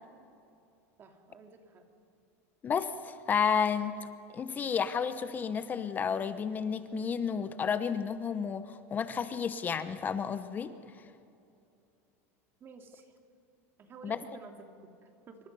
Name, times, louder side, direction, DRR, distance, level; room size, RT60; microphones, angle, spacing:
voice 1, 1.0-1.9 12.6-13.1 13.8-15.5, right 4 dB, 30° right, 4 dB, 2.6 m, -52 dB
voice 2, 2.6-4.1 4.3-10.7 14.0-14.2, left 6 dB, 20° left, 12 dB, 0.8 m, -31 dB
26.5 x 25.0 x 5.4 m, 2.7 s
supercardioid pair, 150°, 8 cm